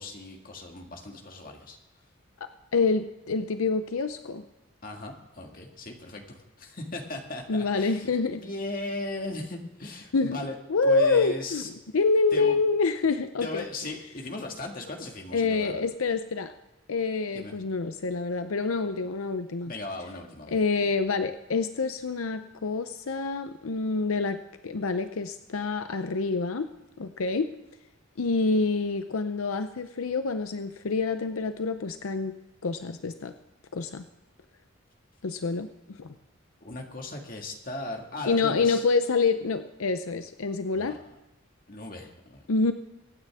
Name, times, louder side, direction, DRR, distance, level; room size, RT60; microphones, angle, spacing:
voice 1, 0.0-1.8 4.8-10.6 10.8-11.7 12.3-12.6 13.4-15.8 17.3-17.5 19.6-20.6 36.6-38.8 40.7-41.0 41.7-42.4, left 2 dB, 40° left, 2 dB, 2.0 m, -37 dB
voice 2, 2.4-4.4 7.5-8.4 10.1-10.4 10.7-13.6 15.3-16.5 16.9-19.7 20.5-26.7 27.0-27.5 28.2-32.4 32.6-33.3 33.7-34.0 35.2-36.1 38.3-41.0 42.5-42.7, left 4 dB, 85° left, 9 dB, 0.6 m, -27 dB
24.0 x 9.2 x 3.5 m, 1.0 s
head